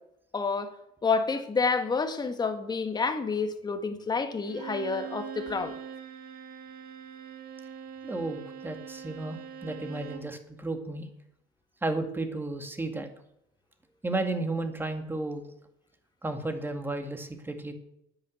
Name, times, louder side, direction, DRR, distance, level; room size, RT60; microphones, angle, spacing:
voice 1, 0.3-0.7 1.0-5.7, left 4 dB, 25° left, 7 dB, 1.7 m, -29 dB
Bowed string instrument, 4.4-10.4, right 7 dB, 55° right, 1.6 m, -42 dB
voice 2, 8.0-11.1 11.8-13.1 14.0-15.4 16.2-17.7, right 2 dB, 10° right, 6 dB, 2.1 m, -33 dB
10.5 x 9.9 x 7.9 m, 0.81 s
supercardioid pair, 110°, 18 cm